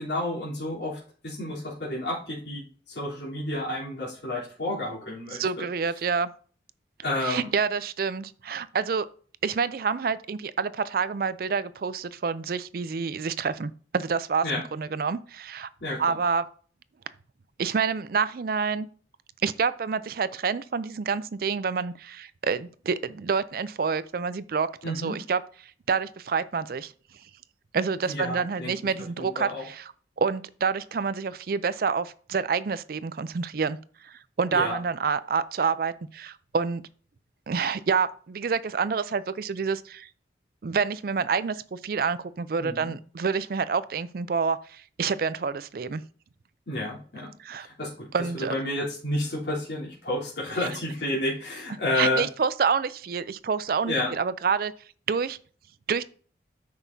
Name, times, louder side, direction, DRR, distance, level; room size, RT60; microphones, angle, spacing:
voice 1, 0.0-5.6 7.0-7.5 14.4-14.6 15.8-16.1 24.8-25.2 28.0-28.9 29.2-29.6 34.5-34.8 42.6-42.9 46.7-48.1 48.5-52.2 53.8-54.1, left 1 dB, 65° left, 3.4 m, -30 dB
voice 2, 5.3-6.3 7.2-9.1 9.4-14.5 14.7-15.7 16.0-16.4 17.6-18.9 19.4-25.4 25.9-26.9 27.7-33.8 34.0-36.8 37.5-40.1 40.6-46.0 47.4-47.7 48.1-48.5 51.9-54.7 55.1-55.4 55.9-56.0, right 5 dB, 55° right, 0.4 m, -28 dB
9.4 x 6.2 x 2.7 m
head